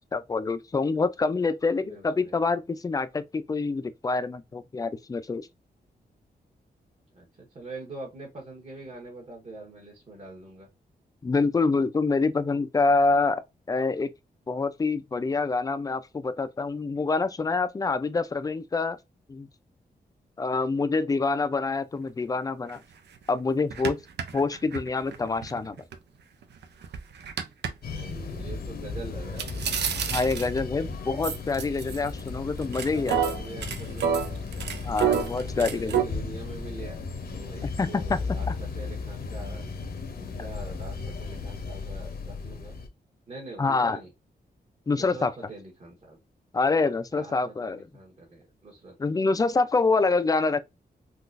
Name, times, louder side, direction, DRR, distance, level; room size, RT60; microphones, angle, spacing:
voice 1, 0.1-5.5 11.2-13.4 13.7-14.1 14.5-19.0 19.3-19.5 20.4-22.8 23.3-24.0 24.3-25.8 30.1-33.3 34.8-36.0 37.8-38.2 38.5-38.6 43.6-44.0 44.9-45.3 46.5-47.8 49.0-50.6, left 3 dB, 20° left, 0.4 m, -26 dB
voice 2, 1.8-2.4 7.1-10.7 27.9-29.8 32.8-34.2 35.1-39.7 40.2-42.7 43.3-44.1 44.9-46.2 46.7-49.0, right 2 dB, 40° right, 1.2 m, -44 dB
sound 1, 22.7-22.8 23.2-23.3 23.7-26.0 26.4-27.7 29.4-30.7 31.2-32.3 32.6-36.0, right 8 dB, 90° right, 0.6 m, -29 dB
sound 2, 27.8-42.9, left 4 dB, 65° left, 0.8 m, -35 dB
3.8 x 2.4 x 2.4 m
wide cardioid pair, 125°, 17 cm